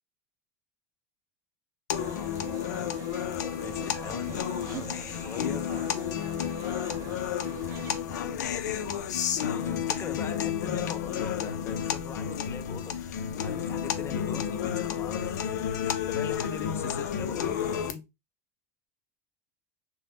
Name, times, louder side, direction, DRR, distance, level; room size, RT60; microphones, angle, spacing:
sound 1, 1.9-17.9, left 8 dB, 90° left, 0.4 m, -31 dB
sound 2, 2.0-8.0, right 6 dB, 40° right, 0.5 m, -45 dB
voice 1, 3.6-5.8 7.5-8.6 9.6-18.0, left 7 dB, 30° left, 0.4 m, -41 dB
2.5 x 2.1 x 3.4 m
supercardioid pair, 110°, 9 cm